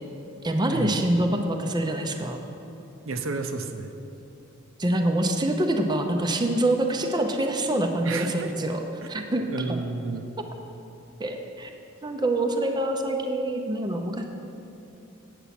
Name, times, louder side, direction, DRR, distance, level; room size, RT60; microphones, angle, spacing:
voice 1, 0.4-2.4 4.8-8.8 9.1-9.8 11.2-11.7 12.0-14.2, right 1 dB, 20° right, 3 dB, 0.6 m, -25 dB
voice 2, 3.1-3.9 8.0-8.5 9.0-9.1 9.5-10.3, right 3 dB, 75° right, 6 dB, 0.6 m, -31 dB
8.3 x 8.2 x 5.8 m, 2.8 s
head